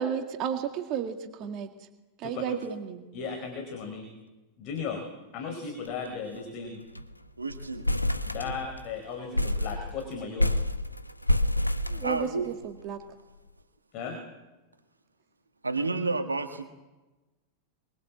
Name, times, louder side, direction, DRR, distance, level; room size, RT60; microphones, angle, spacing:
voice 1, 0.0-1.7 2.2-3.0 11.9-13.0, right 7 dB, 40° right, 5 dB, 2.0 m, -33 dB
voice 2, 2.5-2.9 7.4-7.8 12.0-12.5 15.6-16.7, right 3 dB, 80° right, 7 dB, 1.5 m, -31 dB
voice 3, 3.1-4.1 4.6-5.0 5.3-6.8 8.3-10.5 13.9-14.2, left 5 dB, 40° left, 4 dB, 4.6 m, -36 dB
sound 1, 5.9-6.1 6.4-6.5 6.8-7.1 7.5-8.9 9.3-12.6, left 1 dB, 90° left, 1.0 m, -28 dB
24.0 x 23.5 x 7.6 m, 1.1 s
figure-of-eight pair, 90°, 0 cm